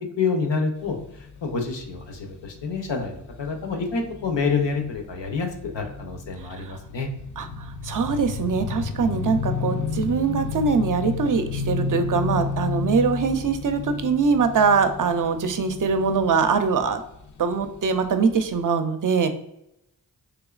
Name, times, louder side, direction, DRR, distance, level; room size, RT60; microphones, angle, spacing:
voice 1, 0.2-1.0 1.4-7.1, left 4 dB, 70° left, 3 dB, 0.8 m, -27 dB
sound 1, 0.8-18.1 18.4-18.6, left 5 dB, 45° left, 0.5 m, -32 dB
voice 2, 6.4-6.8 7.4-17.0 17.4-19.3, right 5 dB, 45° right, 8 dB, 0.5 m, -23 dB
3.5 x 3.0 x 2.3 m, 0.84 s
cardioid pair, 40°, 44 cm